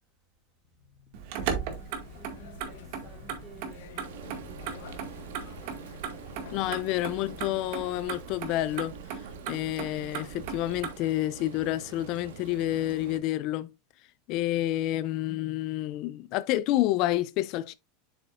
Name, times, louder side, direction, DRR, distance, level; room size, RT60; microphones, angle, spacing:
voice 1, 0.7-6.2, right 2 dB, 25° right, 2.1 m, -55 dB
Motor vehicle (road), 1.1-10.9, right 7 dB, 55° right, 1.8 m, -38 dB
sound 1, 1.7-7.6, left 8 dB, 70° left, 1.0 m, -49 dB
Frying (food), 4.0-13.2, right 6 dB, 85° right, 1.5 m, -46 dB
voice 2, 6.5-13.7 14.3-17.7, left 15 dB, 45° left, 0.4 m, -29 dB
7.7 x 6.7 x 2.5 m
supercardioid pair, 145°, 0 cm